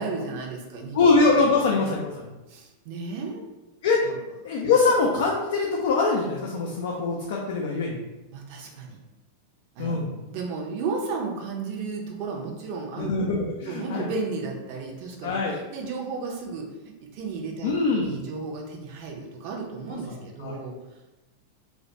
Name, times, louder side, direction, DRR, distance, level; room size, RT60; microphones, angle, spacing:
voice 1, 0.0-1.0 1.8-2.0 2.5-3.4 4.0-4.2 8.3-9.0 9.8-13.1 13.7-20.8, right 4 dB, 45° right, 0 dB, 0.5 m, -34 dB
voice 2, 0.9-2.3 3.8-4.0 4.4-8.0 9.8-10.1 13.0-14.1 15.2-15.5 17.6-18.3 20.4-20.6, left 4 dB, 55° left, -2 dB, 0.3 m, -23 dB
2.2 x 2.1 x 2.7 m, 1.0 s
figure-of-eight pair, 90°, 0 cm